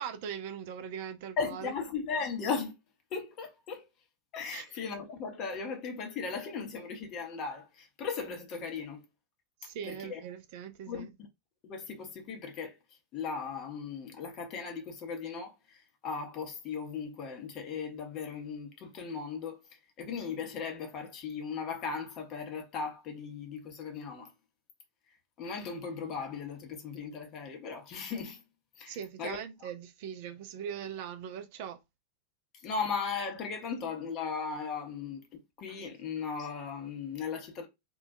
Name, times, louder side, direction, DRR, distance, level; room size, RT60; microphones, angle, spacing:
voice 1, 0.0-1.7 4.5-4.6 9.6-11.1 28.9-31.8, right 8 dB, 50° right, 0.3 m, -40 dB
voice 2, 1.4-2.7 3.1-3.9 4.3-9.0 9.8-10.2 10.9-11.1 11.6-12.8 13.1-19.6 20.0-24.3 25.4-28.4 28.8-29.7 32.6-37.7, left 5 dB, 35° left, 0.7 m, -37 dB
2.2 x 2.2 x 2.5 m
figure-of-eight pair, 90°, 0 cm